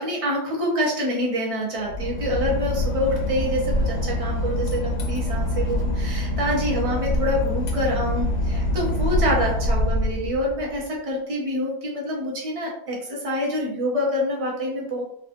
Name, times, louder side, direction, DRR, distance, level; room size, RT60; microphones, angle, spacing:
voice 1, 0.0-15.0, left 1 dB, 35° right, -2 dB, 0.6 m, -26 dB
Boat Water vehicle / Engine, 1.8-10.8, left 1 dB, 60° left, 0.7 m, -25 dB
3.4 x 2.4 x 2.5 m, 0.70 s
omnidirectional pair, 1.5 m